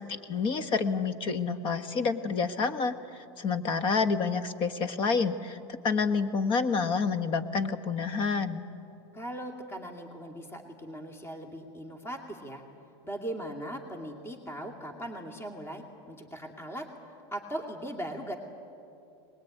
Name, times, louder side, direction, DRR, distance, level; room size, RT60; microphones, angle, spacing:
voice 1, 0.0-5.6 5.8-8.6, left 5 dB, 35° left, 11 dB, 1.4 m, -28 dB
voice 2, 9.1-12.6 13.0-16.9 17.3-18.4, right 1 dB, 15° left, 3 dB, 2.4 m, -39 dB
22.5 x 20.5 x 9.4 m, 2.6 s
supercardioid pair, 135°, 15 cm